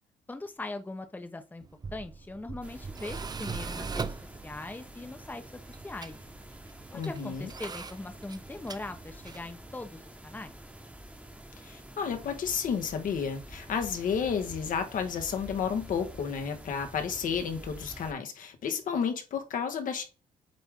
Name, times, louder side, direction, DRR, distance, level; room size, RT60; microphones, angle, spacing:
voice 1, 0.3-1.6 1.9-5.4 5.8-6.2 6.9-10.6, left 2 dB, 10° left, 1.0 m, -41 dB
Tools, 1.6-9.6, right 4 dB, 30° right, 0.5 m, -41 dB
sound 1, 2.6-18.1, right 1 dB, 10° right, 1.3 m, -48 dB
voice 2, 6.9-7.5 11.6-20.0, left 6 dB, 70° left, 1.5 m, -31 dB
8.4 x 3.4 x 3.7 m
cardioid pair, 85°, 15 cm